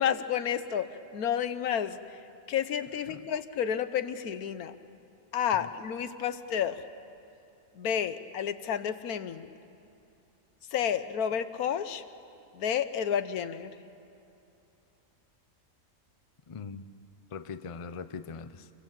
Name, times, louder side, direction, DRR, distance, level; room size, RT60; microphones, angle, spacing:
voice 1, 0.0-2.0 2.5-4.8 5.3-6.8 7.8-9.5 10.7-12.0 12.5-13.7, left 8 dB, 85° left, 1.4 m, -30 dB
voice 2, 16.5-16.9 17.3-18.7, left 5 dB, 35° left, 0.5 m, -41 dB
27.0 x 23.0 x 7.5 m
omnidirectional pair, 1.5 m